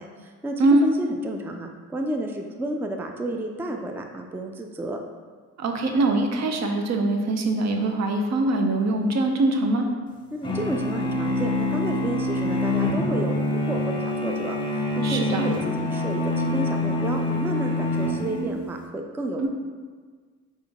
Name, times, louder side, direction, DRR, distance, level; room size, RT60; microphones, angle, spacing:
voice 1, 0.0-5.0 10.3-19.5, right 1 dB, 5° right, 3 dB, 0.3 m, -31 dB
voice 2, 5.6-9.9 15.0-15.5 19.4-19.5, right 2 dB, 60° right, 4 dB, 0.7 m, -23 dB
sound 1, 10.4-18.8, left 1 dB, 15° left, 0.7 m, -26 dB
4.1 x 3.7 x 3.5 m, 1.5 s
cardioid pair, 90°, 30 cm